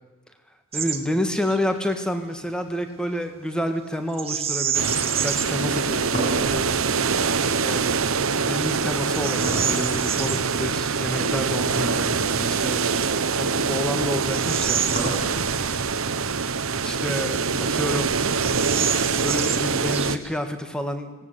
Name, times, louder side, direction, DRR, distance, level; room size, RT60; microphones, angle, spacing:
voice 1, 0.7-6.8 7.5-7.8 8.4-13.0 13.3-14.8 16.8-18.2 19.2-21.3, equal, 5° left, 7 dB, 1.7 m, -29 dB
Bird vocalization bird call bird song, 0.7-1.0 1.3-1.6 4.1-5.6 6.2-6.3 6.9-7.3 7.9-8.0 8.5-10.4 12.5-12.6 13.3-15.7 16.1-16.2 16.8-17.6 17.9-18.0 18.3-20.4, right 8 dB, 25° right, 1.7 m, -29 dB
sound 1, 4.7-20.2, right 5 dB, 65° right, 1.0 m, -24 dB
sound 2, 6.1-8.1 9.4-10.3 11.0-11.5 11.8-11.9 12.7-12.8 14.2-15.7, right 1 dB, 35° left, 5.9 m, -32 dB
19.5 x 17.5 x 8.1 m, 1.2 s
head